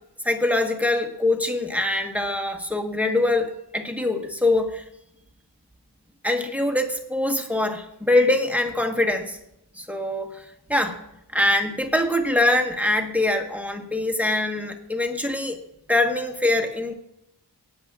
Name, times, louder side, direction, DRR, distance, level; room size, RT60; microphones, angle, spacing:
voice 1, 0.2-4.8 6.2-9.4 9.8-10.4 10.7-11.0 11.3-15.6 15.9-16.9, left 2 dB, 5° right, 4 dB, 1.3 m, -23 dB
20.5 x 9.6 x 2.4 m, 0.82 s
wide cardioid pair, 65°, 42 cm